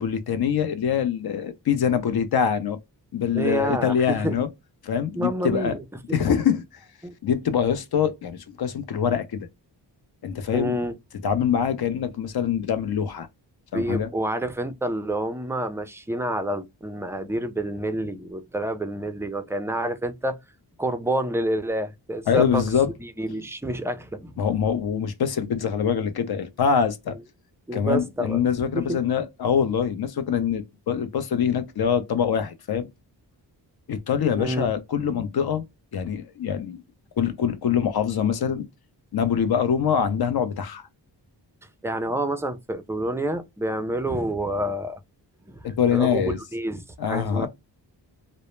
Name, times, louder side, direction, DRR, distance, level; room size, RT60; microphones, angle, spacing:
voice 1, 0.0-2.8 3.1-4.5 4.8-5.8 6.1-6.6 7.2-9.5 10.2-10.8 11.2-13.3 13.7-14.1 22.3-22.9 24.4-27.2 27.7-32.9 33.9-35.6 35.9-36.8 37.2-38.7 39.1-40.9 45.6-46.4 47.0-47.5, left 7 dB, 60° left, 0.6 m, -24 dB
voice 2, 3.3-4.4 5.1-6.2 7.0-7.1 10.5-10.9 13.7-20.4 20.8-22.6 23.0-24.4 27.7-28.4 28.8-29.0 34.4-34.7 41.8-45.0 45.5-47.5, right 1 dB, 5° right, 0.3 m, -28 dB
2.0 x 2.0 x 3.0 m
cardioid pair, 80°, 42 cm